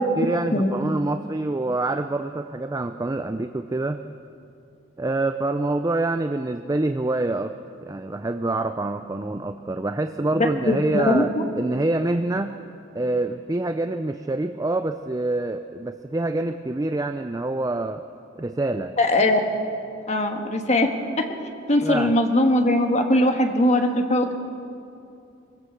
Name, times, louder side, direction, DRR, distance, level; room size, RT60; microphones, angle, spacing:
voice 1, 0.2-4.0 5.0-7.6 7.8-12.6 12.9-18.0 18.4-19.0 21.8-22.1, right 2 dB, 20° right, 8 dB, 0.4 m, -26 dB
voice 2, 10.3-11.4 19.0-19.4 20.1-20.9 21.2-21.3 21.7-24.3, left 1 dB, 35° left, 4 dB, 1.6 m, -20 dB
23.0 x 16.5 x 7.2 m, 2.7 s
head